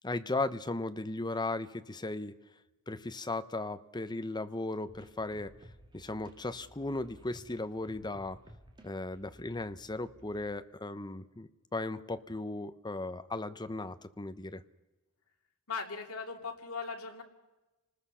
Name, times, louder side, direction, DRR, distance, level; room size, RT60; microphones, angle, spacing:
voice 1, 0.0-2.3 2.9-5.5 5.9-8.4 8.8-14.6, left 2 dB, 20° left, 11 dB, 0.8 m, -36 dB
sound 1, 4.9-10.5, equal, 20° right, 2.1 m, -56 dB
voice 2, 15.7-17.2, left 4 dB, 80° left, 3 dB, 2.7 m, -39 dB
29.5 x 20.0 x 5.7 m, 1.1 s
head